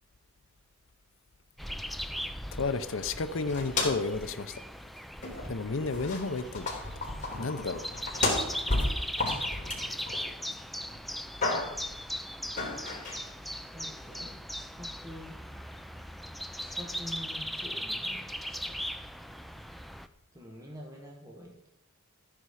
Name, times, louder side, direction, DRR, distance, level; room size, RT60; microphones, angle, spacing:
sound 1, 1.6-20.1, equal, ahead, 0.4 m, -39 dB
voice 1, 2.5-4.6 5.5-6.8 7.4-7.9, left 3 dB, 60° left, 12 dB, 0.7 m, -32 dB
sound 2, 3.5-4.2 4.5-4.6 5.2-5.6 5.9-10.5 10.9-11.9 12.6-13.2, left 2 dB, 35° left, 3.6 m, -33 dB
voice 2, 13.7-15.4 16.6-18.8 20.3-21.7, equal, 15° right, -1 dB, 1.6 m, -47 dB
14.0 x 9.8 x 4.9 m, 0.83 s
head